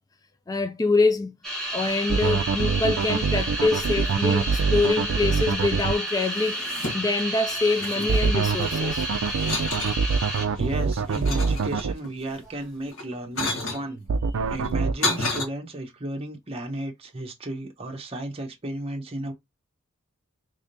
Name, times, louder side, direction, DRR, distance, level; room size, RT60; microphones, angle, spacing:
voice 1, 0.5-1.4 1.7-9.1, left 3 dB, 15° left, 0.4 m, -25 dB
sound 1, 1.4-10.7 11.0-11.6 12.3-12.6, right 1 dB, ahead, 1.4 m, -31 dB
sound 2, 2.1-5.9 8.1-11.9 14.1-14.9, right 5 dB, 75° right, 0.4 m, -24 dB
sound 3, 6.2-7.2 7.5-8.8 9.3-10.0 10.6-12.1 12.9-13.8 14.6-15.4, left 2 dB, 75° left, 1.5 m, -31 dB
voice 2, 10.6-14.1 14.5-19.3, right 1 dB, 30° right, 0.9 m, -33 dB
3.5 x 3.4 x 2.6 m
head